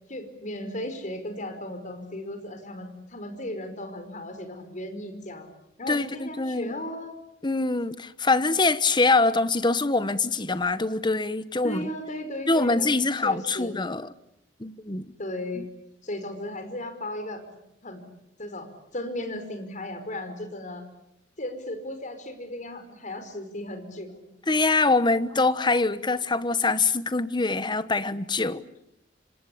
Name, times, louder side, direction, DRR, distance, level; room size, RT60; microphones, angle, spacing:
voice 1, 0.1-5.5 5.8-7.1 11.6-12.9 13.2-13.8 15.2-15.6 16.0-17.4 17.8-18.0 18.4-20.8 21.4-24.2, left 1 dB, 45° left, 5.1 m, -35 dB
voice 2, 5.9-6.7 7.4-11.9 12.5-14.1 14.6-15.1 15.6-15.7 24.5-28.6, left 3 dB, 25° left, 1.2 m, -24 dB
26.5 x 26.0 x 8.6 m
head